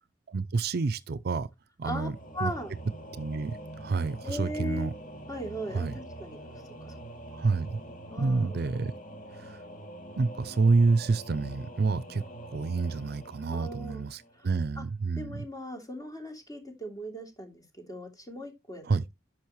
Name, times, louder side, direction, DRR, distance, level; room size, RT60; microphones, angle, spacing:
voice 1, 0.3-1.5 1.8-2.1 2.4-2.5 3.2-4.9 5.7-6.0 7.3-7.8 8.2-8.9 9.3-9.6 10.2-12.2 12.5-15.4 18.9-19.0, right 4 dB, 55° right, 0.5 m, -28 dB
Singing / Musical instrument, 2.1-14.7, right 1 dB, 45° left, 2.7 m, -45 dB
voice 2, 2.3-2.7 4.2-4.9 5.3-7.0 8.1-8.6 13.5-14.0 14.3-14.5 14.8-14.9 15.2-18.8, equal, 20° left, 2.9 m, -38 dB
10.5 x 6.1 x 3.1 m
head